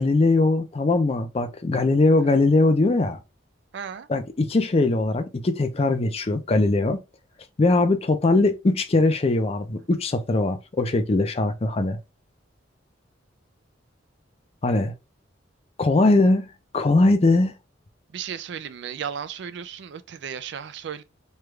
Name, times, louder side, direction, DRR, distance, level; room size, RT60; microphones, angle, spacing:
voice 1, 0.0-3.2 4.1-7.0 7.6-12.0 14.6-14.9 15.8-16.5 16.7-17.5, left 2 dB, 30° left, 0.4 m, -21 dB
voice 2, 3.7-4.1 18.1-21.0, right 8 dB, 60° right, 0.3 m, -34 dB
3.2 x 2.4 x 3.1 m
head